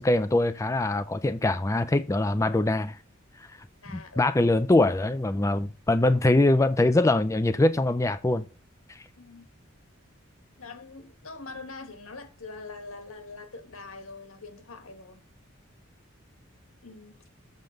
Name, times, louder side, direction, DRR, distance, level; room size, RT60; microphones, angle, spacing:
voice 1, 0.0-3.0 3.9-8.5 8.9-9.0, left 2 dB, 15° left, 0.4 m, -23 dB
voice 2, 3.8-4.4 9.2-9.5 10.6-15.2 16.8-17.2, left 3 dB, 85° left, 1.7 m, -43 dB
7.8 x 5.2 x 6.4 m
head